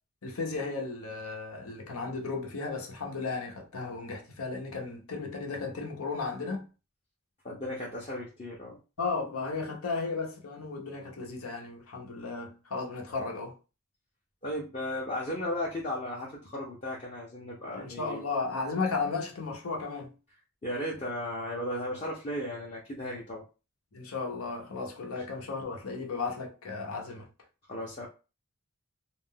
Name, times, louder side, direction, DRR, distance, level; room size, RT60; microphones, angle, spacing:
voice 1, 0.2-6.7 9.0-13.5 17.7-20.1 23.9-27.3, left 4 dB, 80° left, 0.8 m, -34 dB
voice 2, 7.4-8.8 14.4-18.3 20.6-23.4 27.7-28.1, left 1 dB, 30° left, 0.6 m, -35 dB
2.4 x 2.1 x 3.5 m
head